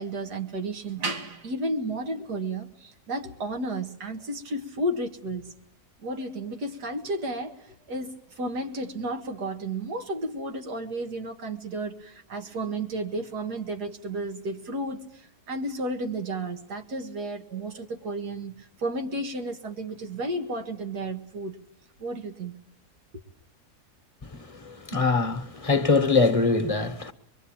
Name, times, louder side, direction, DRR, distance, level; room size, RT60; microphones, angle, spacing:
voice 1, 0.0-5.5 6.0-21.6 22.0-22.5, right 1 dB, 90° right, 2.4 m, -32 dB
voice 2, 24.6-27.1, left 3 dB, 25° left, 1.1 m, -23 dB
24.5 x 22.0 x 8.8 m
omnidirectional pair, 1.7 m